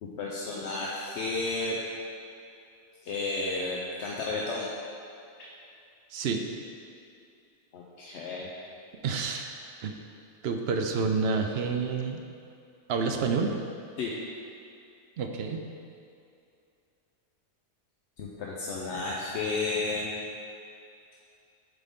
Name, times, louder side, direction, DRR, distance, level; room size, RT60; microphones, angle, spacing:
voice 1, 0.0-1.8 3.0-4.7 7.7-8.5 14.0-14.2 18.2-20.1, left 3 dB, 75° left, -4 dB, 0.9 m, -32 dB
voice 2, 6.1-6.4 9.0-9.5 9.8-10.0 10.4-12.2 12.9-13.6 15.2-15.6, right 5 dB, 65° right, 4 dB, 0.8 m, -28 dB
8.3 x 3.8 x 3.6 m, 2.6 s
omnidirectional pair, 1.2 m